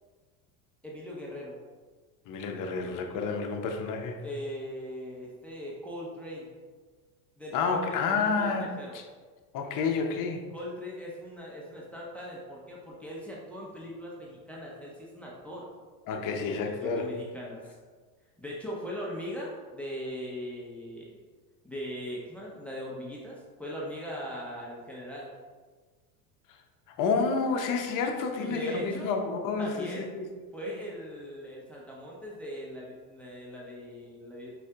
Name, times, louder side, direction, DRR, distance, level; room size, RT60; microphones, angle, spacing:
voice 1, 0.8-1.6 4.2-6.5 7.4-9.0 10.5-15.7 16.8-17.8 18.4-21.2 21.6-25.3 28.4-29.2 29.6-30.2 30.5-34.5, equal, 5° left, -4 dB, 0.7 m, -40 dB
voice 2, 2.3-4.3 7.5-9.0 9.5-10.4 16.1-17.1 27.0-30.3, left 4 dB, 45° left, 3 dB, 0.7 m, -29 dB
4.8 x 2.6 x 3.3 m, 1.4 s
supercardioid pair, 100°, 47 cm